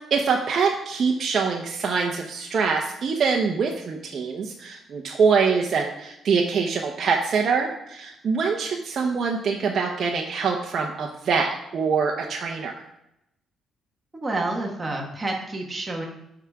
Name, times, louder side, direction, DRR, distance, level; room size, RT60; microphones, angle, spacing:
voice 1, 0.1-12.7, right 5 dB, 55° right, 0 dB, 0.9 m, -24 dB
voice 2, 14.1-16.1, right 2 dB, 20° right, -1 dB, 1.5 m, -29 dB
11.5 x 5.0 x 3.6 m, 0.82 s
cardioid pair, 90°, 0 cm